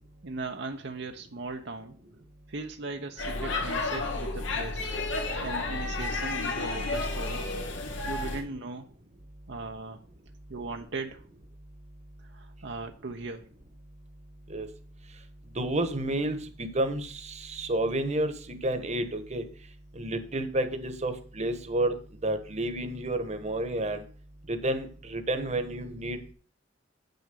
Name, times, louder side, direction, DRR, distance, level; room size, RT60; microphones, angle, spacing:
voice 1, 0.2-2.0 2.5-4.9 5.4-7.5 8.1-8.9 9.5-10.0 10.5-11.3 12.2-13.5, right 3 dB, 65° right, 4 dB, 0.9 m, -38 dB
Speech / Shout / Subway metro underground, 3.2-8.4, left 2 dB, 85° left, 2.3 m, -31 dB
voice 2, 15.5-19.4 19.9-24.0 24.5-26.3, right 1 dB, 35° right, 8 dB, 1.3 m, -30 dB
8.7 x 6.6 x 6.9 m, 0.42 s
head